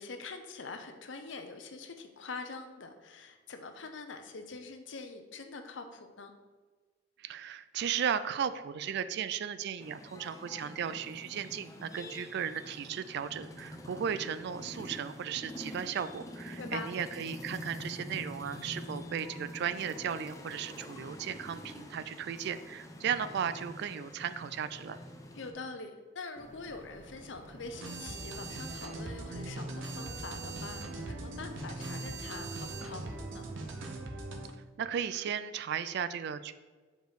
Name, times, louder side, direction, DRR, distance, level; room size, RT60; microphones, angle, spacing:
voice 1, 0.0-6.3 16.6-16.9 25.4-33.4, left 3 dB, 70° left, 6 dB, 0.7 m, -44 dB
voice 2, 7.2-25.0 34.8-36.5, right 8 dB, 60° right, 13 dB, 0.3 m, -35 dB
sound 1, 9.8-25.5, left 1 dB, 20° left, 0.6 m, -46 dB
sound 2, 26.4-33.7, right 5 dB, 20° right, 1.0 m, -48 dB
sound 3, 27.7-34.5, right 2 dB, 85° right, 0.8 m, -41 dB
5.1 x 4.3 x 4.7 m, 1.4 s
head